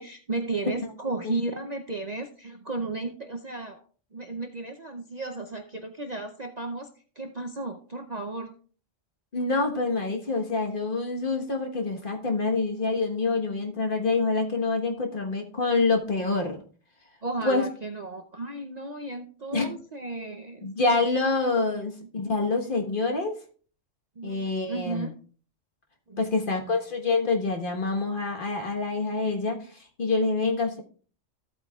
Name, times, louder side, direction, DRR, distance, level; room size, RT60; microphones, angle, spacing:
voice 1, 0.0-3.8 4.1-6.9 7.2-8.5 17.2-20.7 22.0-22.3 24.2-25.1 26.1-26.3, right 3 dB, 40° right, 3 dB, 0.6 m, -34 dB
voice 2, 9.3-16.6 17.4-17.6 19.5-19.7 20.6-23.3 24.2-25.1 26.2-30.8, left 3 dB, 40° left, 2 dB, 1.4 m, -26 dB
14.0 x 8.4 x 2.3 m, 0.42 s
omnidirectional pair, 1.3 m